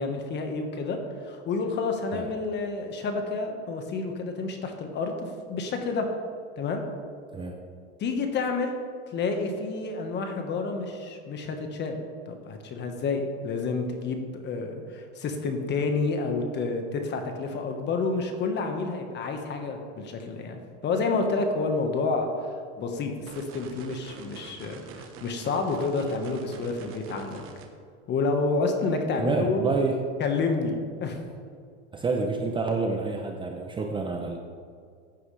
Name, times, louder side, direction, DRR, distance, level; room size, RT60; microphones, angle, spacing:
voice 1, 0.0-6.1 6.6-6.8 8.0-8.7 9.1-12.0 12.3-27.4 28.1-29.7 30.2-30.7 31.0-31.2, left 3 dB, 30° left, 5 dB, 1.4 m, -29 dB
sound 1, 23.3-27.7, right 6 dB, 35° right, 1.2 m, -45 dB
voice 2, 29.2-30.0 31.9-34.4, right 3 dB, 15° right, 2 dB, 0.7 m, -28 dB
15.0 x 9.3 x 3.3 m, 2.2 s
supercardioid pair, 135°, 35 cm